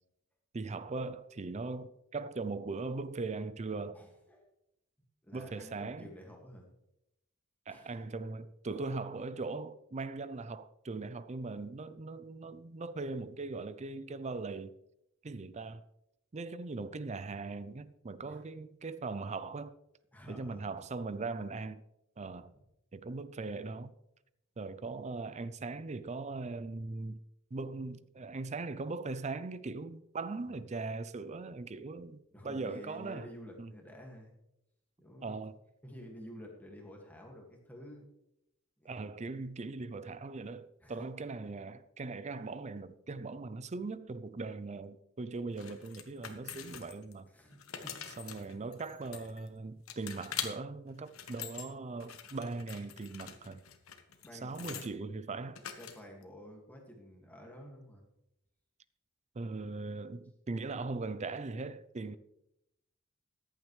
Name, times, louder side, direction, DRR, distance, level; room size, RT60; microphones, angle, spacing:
voice 1, 0.5-4.0 5.3-6.1 7.7-14.7 15.2-15.8 16.3-19.7 20.3-21.8 22.2-22.5 22.9-23.9 24.6-27.2 27.5-33.3 33.6-33.7 35.2-35.6 38.8-47.3 48.2-53.6 54.4-55.6 59.3-62.2, right 3 dB, 35° right, 0.5 m, -40 dB
voice 2, 3.9-4.5 5.2-6.7 7.7-8.1 8.7-8.8 18.3-18.4 20.1-20.7 22.5-22.6 30.5-30.6 32.3-34.3 35.0-35.4 35.8-38.1 38.8-38.9 40.8-41.0 47.3-48.2 48.4-48.5 54.2-54.8 55.8-58.0, equal, 10° left, 2.0 m, -51 dB
sound 1, 45.6-47.1 47.5-49.5 49.9-50.5 51.0-51.7 52.0-54.9 55.6-56.2, left 9 dB, 85° left, 1.2 m, -44 dB
14.5 x 11.0 x 3.3 m
head